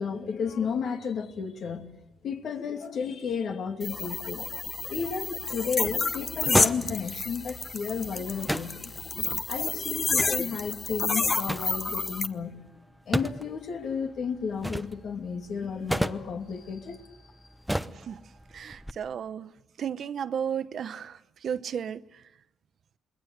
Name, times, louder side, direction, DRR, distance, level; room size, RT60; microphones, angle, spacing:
voice 1, 0.0-1.9 2.2-4.4 4.9-8.9 9.5-12.7 13.1-17.0, left 6 dB, 65° left, 2.6 m, -33 dB
sound 1, 3.8-12.3, left 4 dB, 30° left, 1.2 m, -30 dB
sound 2, 4.8-18.9, equal, 5° right, 0.8 m, -36 dB
voice 2, 18.5-19.5 19.8-22.0, right 8 dB, 60° right, 0.8 m, -33 dB
27.5 x 21.0 x 8.1 m
cardioid pair, 90°, 0 cm